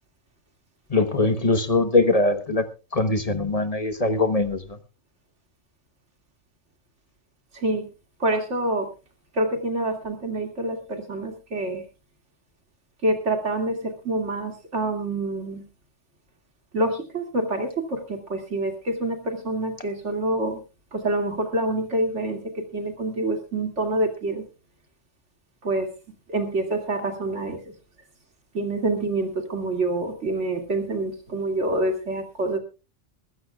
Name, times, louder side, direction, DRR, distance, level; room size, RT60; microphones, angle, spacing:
voice 1, 0.9-2.6 2.9-4.8, left 2 dB, 30° left, 1.1 m, -22 dB
voice 2, 7.5-7.9 8.2-8.9 9.3-11.8 13.0-15.7 16.7-20.6 20.9-24.4 25.6-25.9 26.3-27.6 28.5-32.6, right 2 dB, 65° right, 2.9 m, -26 dB
21.5 x 15.0 x 2.3 m
omnidirectional pair, 1.3 m